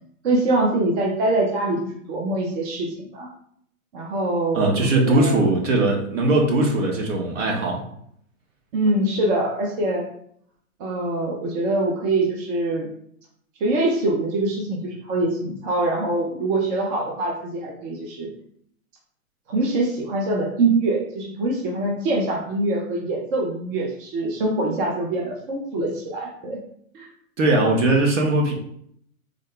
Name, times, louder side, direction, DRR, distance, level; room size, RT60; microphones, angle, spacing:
voice 1, 0.2-3.3 3.9-5.4 8.7-10.0 10.8-12.9 13.6-18.3 19.5-26.6 26.9-27.1, right 2 dB, 40° right, -1 dB, 0.6 m, -24 dB
voice 2, 4.5-7.8 27.4-28.5, right 2 dB, 60° right, 1 dB, 1.1 m, -20 dB
3.6 x 2.1 x 3.6 m, 0.67 s
hypercardioid pair, 125°, 43 cm